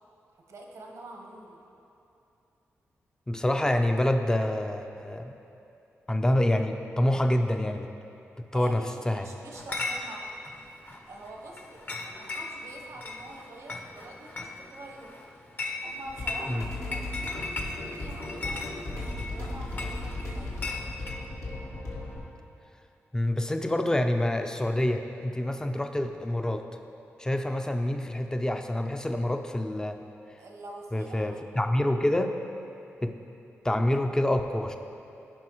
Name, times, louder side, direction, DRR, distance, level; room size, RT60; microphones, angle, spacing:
voice 1, 0.3-1.6 8.5-10.3 11.1-15.2 15.8-17.4 17.8-18.7 19.3-20.7 30.4-31.4, right 2 dB, 75° right, 1 dB, 1.1 m, -45 dB
voice 2, 3.3-5.3 6.1-7.9 8.5-9.3 16.5-16.6 23.1-26.6 27.2-30.0 30.9-32.3 33.0-33.1 33.6-34.8, left 1 dB, 15° left, 5 dB, 0.6 m, -27 dB
Chatter / Chink clink, 9.5-21.2, left 3 dB, 40° left, 1.0 m, -38 dB
sound 1, 16.1-22.2, left 2 dB, 70° left, 1.7 m, -36 dB
14.5 x 5.3 x 3.1 m, 2.9 s
cardioid pair, 55°, 5 cm